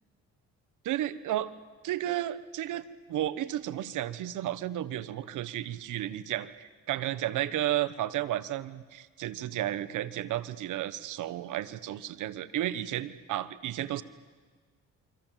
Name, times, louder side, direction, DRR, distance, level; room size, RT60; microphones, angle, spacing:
voice 1, 0.8-1.5 1.8-14.0, right 13 dB, 80° right, 14 dB, 1.2 m, -33 dB
28.0 x 25.0 x 7.6 m, 1.5 s
cardioid pair, 90°, 30 cm